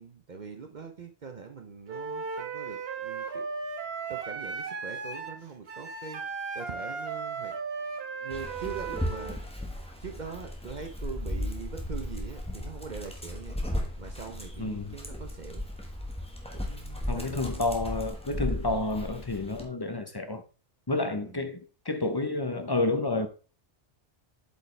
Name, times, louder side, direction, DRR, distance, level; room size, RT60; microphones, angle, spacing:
voice 1, 0.0-3.5 4.1-7.6 8.2-9.4 10.0-13.6 14.0-15.6 16.5-17.4 21.0-21.4, right 5 dB, 45° right, 0.8 m, -42 dB
Wind instrument woodwind instrument, 1.9-9.4, right 5 dB, 60° right, 1.3 m, -36 dB
Dog, 8.3-19.6, left 1 dB, 5° left, 1.2 m, -36 dB
voice 2, 14.6-15.0 17.1-20.4 20.9-21.6 21.9-23.3, left 2 dB, 25° left, 0.6 m, -30 dB
8.0 x 5.2 x 3.2 m
omnidirectional pair, 1.2 m